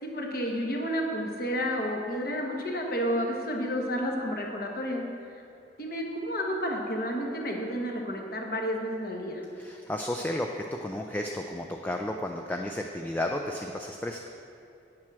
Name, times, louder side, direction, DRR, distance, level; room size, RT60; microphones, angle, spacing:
voice 1, 0.0-5.0 5.8-9.4, equal, 50° left, 0 dB, 1.3 m, -31 dB
voice 2, 9.6-14.2, left 1 dB, 10° left, 2 dB, 0.4 m, -33 dB
8.6 x 7.6 x 6.1 m, 2.6 s
head